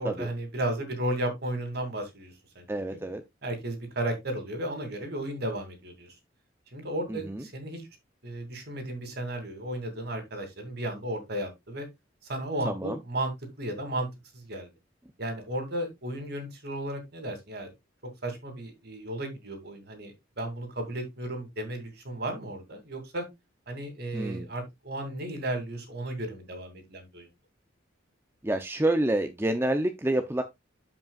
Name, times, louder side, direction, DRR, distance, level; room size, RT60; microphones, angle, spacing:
voice 1, 0.0-3.0 3.4-6.1 6.7-7.9 8.2-11.9 12.2-13.3 13.6-14.1 14.3-14.7 15.2-17.7 18.0-23.3 23.7-27.3, right 1 dB, 55° right, 2.5 m, -34 dB
voice 2, 2.7-3.2 7.1-7.4 12.6-13.0 24.1-24.5 28.4-30.4, right 1 dB, 10° right, 0.6 m, -28 dB
12.5 x 5.4 x 2.4 m
head